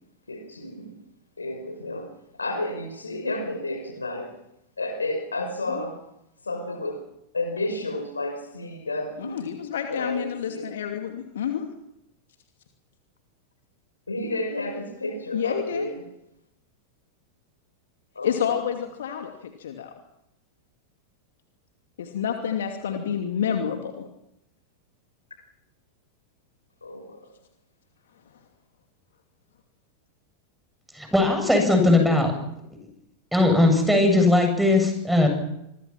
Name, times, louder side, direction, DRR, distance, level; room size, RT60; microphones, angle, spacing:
voice 1, 0.3-0.9 1.4-2.0 2.4-4.3 4.8-5.9 6.5-7.0 7.3-9.4 9.9-10.6 14.1-15.9 18.2-18.3 26.8-27.2, left 2 dB, 75° left, 6 dB, 5.3 m, -31 dB
voice 2, 9.2-11.6 15.3-15.9 18.2-19.9 22.0-24.0, left 8 dB, 60° left, 4 dB, 2.6 m, -29 dB
voice 3, 31.0-32.3 33.3-35.3, left 2 dB, ahead, 4 dB, 7.8 m, -19 dB
27.0 x 23.5 x 6.0 m, 0.84 s
figure-of-eight pair, 90°, 0 cm